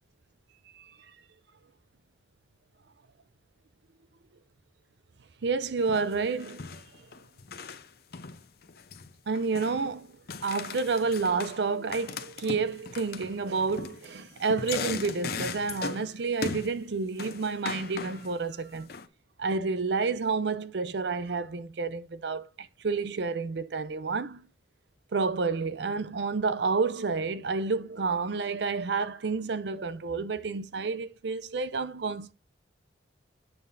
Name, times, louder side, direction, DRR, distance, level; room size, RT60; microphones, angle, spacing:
voice 1, 5.4-6.8 9.3-18.9 19.4-24.5 25.1-32.3, right 4 dB, 70° right, 0.5 m, -30 dB
sound 1, 5.9-6.1 6.4-7.9 8.1-9.1 9.3-9.9 10.3-11.6 11.9-16.1 16.4-16.8 17.2-18.3 18.7-19.1, left 5 dB, 55° left, 0.6 m, -38 dB
8.8 x 5.4 x 2.6 m
head